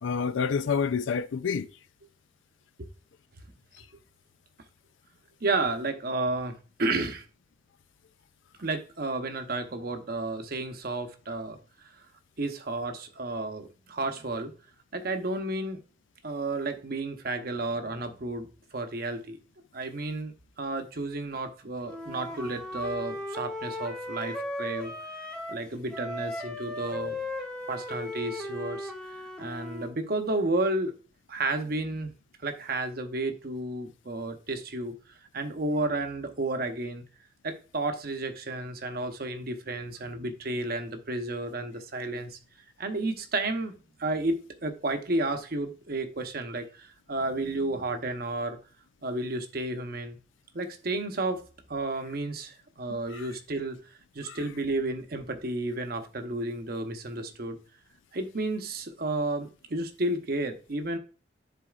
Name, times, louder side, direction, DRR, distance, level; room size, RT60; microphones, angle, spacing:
voice 1, 0.0-1.7 3.7-3.9 53.1-53.3 54.2-54.4, left 6 dB, 85° left, 0.4 m, -28 dB
voice 2, 5.4-7.2 8.6-11.6 11.8-12.0 12.4-14.5 14.9-15.8 16.2-18.5 18.7-19.4 19.7-24.9 25.5-27.2 27.7-28.9 29.4-30.9 31.3-32.1 32.4-34.9 35.3-37.0 37.4-42.4 42.8-43.7 44.0-48.6 49.0-50.2 50.5-51.4 51.7-53.8 54.1-57.6 58.1-61.0, right 2 dB, 55° right, 0.8 m, -32 dB
Wind instrument woodwind instrument, 21.8-25.6 25.9-29.9, left 1 dB, 5° left, 0.9 m, -37 dB
10.5 x 4.1 x 2.4 m
head